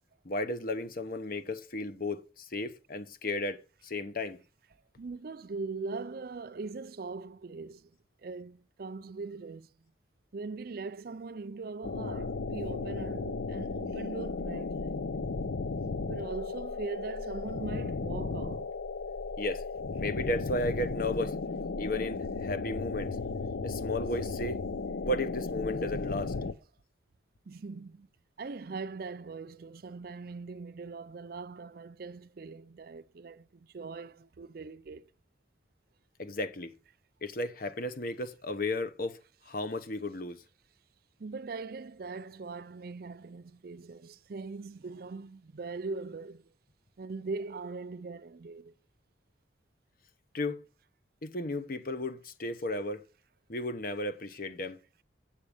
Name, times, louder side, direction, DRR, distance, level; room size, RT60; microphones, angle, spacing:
voice 1, 0.2-4.4 19.4-19.6 20.0-21.3 21.8-23.2 23.6-24.6 25.0-26.3 36.2-36.7 37.2-39.2 39.5-40.4 50.3-50.6 51.2-53.0 53.5-54.8, left 2 dB, 50° left, 0.9 m, -34 dB
voice 2, 5.0-9.8 10.3-15.1 16.1-18.7 27.5-28.1 28.4-35.1 41.2-46.5 47.0-48.7, right 4 dB, 55° right, 0.5 m, -41 dB
sound 1, 11.8-26.5, left 3 dB, 70° left, 0.6 m, -35 dB
8.7 x 7.2 x 5.0 m
head